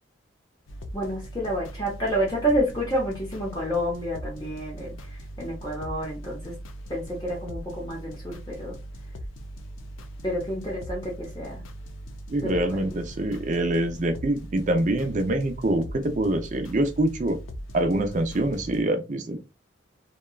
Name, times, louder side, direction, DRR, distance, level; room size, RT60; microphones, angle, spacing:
sound 1, 0.7-18.8, right 1 dB, 90° left, 0.5 m, -40 dB
voice 1, 0.9-6.6 6.9-8.8 10.2-11.6 12.4-12.9, equal, 20° left, 0.6 m, -29 dB
voice 2, 12.3-17.4 17.7-19.4, right 1 dB, 40° right, 0.4 m, -25 dB
2.8 x 2.2 x 2.2 m
head